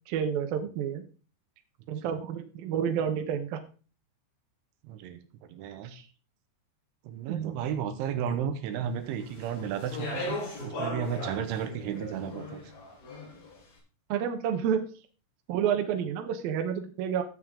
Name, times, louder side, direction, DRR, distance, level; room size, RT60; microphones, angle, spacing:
voice 1, 0.1-1.0 1.9-3.6 5.8-6.1 7.3-7.6 14.1-14.9 15.5-17.2, right 8 dB, 70° right, 5 dB, 2.3 m, -30 dB
voice 2, 4.8-5.2 5.5-5.9 7.1-12.6, right 8 dB, 90° right, 9 dB, 3.6 m, -33 dB
Speech, 9.2-13.6, left 1 dB, 75° left, 6.7 m, -38 dB
15.0 x 7.8 x 3.7 m, 0.37 s
omnidirectional pair, 5.3 m